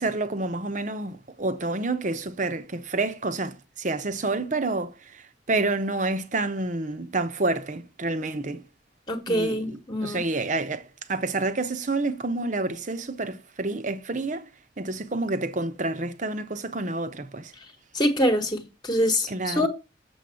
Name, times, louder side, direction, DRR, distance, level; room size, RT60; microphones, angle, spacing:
voice 1, 0.0-4.9 5.5-8.6 9.3-10.8 11.1-14.4 14.8-17.5 19.3-19.7, right 2 dB, 45° right, 0.9 m, -28 dB
voice 2, 9.1-10.2 17.9-19.7, equal, 25° left, 1.3 m, -25 dB
7.2 x 7.1 x 7.6 m
head